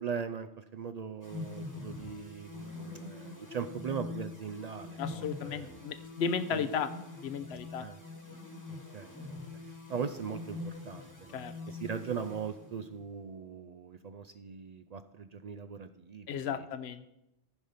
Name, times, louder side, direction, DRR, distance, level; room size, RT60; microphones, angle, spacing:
voice 1, 0.0-5.7 6.5-6.8 7.8-8.0 8.7-9.4 9.7-16.7, right 6 dB, 70° right, 9 dB, 0.3 m, -40 dB
sound 1, 1.2-13.1, left 3 dB, 15° left, 1.3 m, -44 dB
voice 2, 5.0-6.9 7.2-7.9 11.3-11.5 16.3-17.0, left 7 dB, 65° left, 11 dB, 0.9 m, -34 dB
14.5 x 5.1 x 5.6 m, 0.87 s
omnidirectional pair, 1.2 m